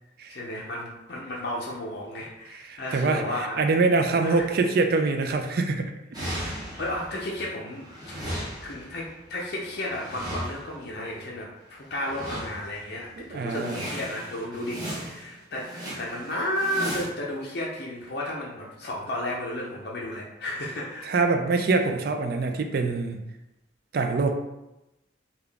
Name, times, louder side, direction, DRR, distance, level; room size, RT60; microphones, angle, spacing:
voice 1, 0.3-3.6 4.1-4.5 6.8-8.3 8.6-21.1, left 1 dB, 55° left, -3 dB, 0.5 m, -33 dB
voice 2, 2.7-5.9 6.2-6.5 13.2-13.8 21.0-23.2 23.9-24.3, right 3 dB, 50° right, 5 dB, 0.3 m, -24 dB
sound 1, 6.1-7.4 7.7-10.9 11.9-12.8 13.2-13.3 13.5-17.1, equal, 20° right, 0.9 m, -36 dB
3.7 x 2.3 x 3.4 m, 0.94 s
head